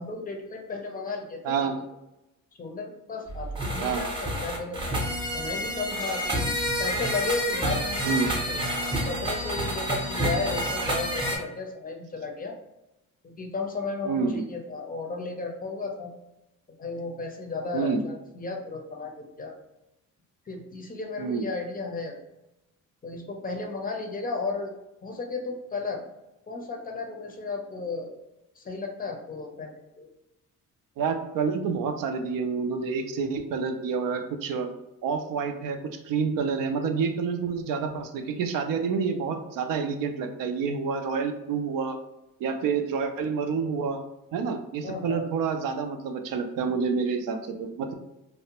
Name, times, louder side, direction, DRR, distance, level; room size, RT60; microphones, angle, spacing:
voice 1, 0.0-1.5 2.6-4.8 5.3-6.4 6.8-8.6 9.1-12.6 13.2-16.1 16.8-19.5 20.5-22.2 23.0-24.7 25.0-26.0 26.5-28.2 28.6-30.1 44.8-45.3, left 3 dB, 25° left, 2 dB, 0.5 m, -34 dB
voice 2, 1.4-1.8 3.8-4.0 8.0-8.3 14.0-14.4 17.7-18.0 21.2-21.5 31.0-34.7 35.0-42.0 42.4-44.0 44.3-47.9, right 5 dB, 80° right, 6 dB, 0.5 m, -28 dB
sound 1, 3.3-11.4, equal, 15° right, 0.6 m, -29 dB
2.5 x 2.1 x 2.8 m, 0.92 s
cardioid pair, 110°, 33 cm